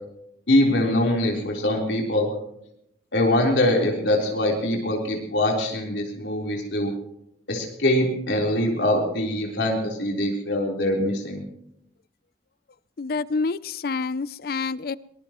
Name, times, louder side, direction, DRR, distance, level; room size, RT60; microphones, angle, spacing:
voice 1, 0.5-2.3 3.1-6.9 7.5-11.4, left 1 dB, 80° left, -1 dB, 4.0 m, -23 dB
voice 2, 13.0-15.0, left 4 dB, 55° left, 18 dB, 0.5 m, -27 dB
22.5 x 21.0 x 3.1 m, 0.78 s
head